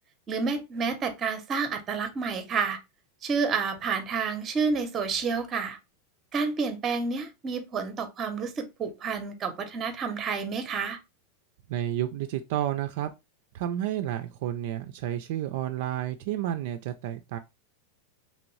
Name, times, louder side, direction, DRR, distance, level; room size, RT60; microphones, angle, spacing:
voice 1, 0.3-2.8 3.2-5.8 6.3-11.0, right 5 dB, 25° right, 0.6 m, -29 dB
voice 2, 11.7-13.1 13.5-17.4, right 12 dB, 60° right, 0.3 m, -31 dB
2.9 x 2.6 x 3.0 m
supercardioid pair, 140°, 0 cm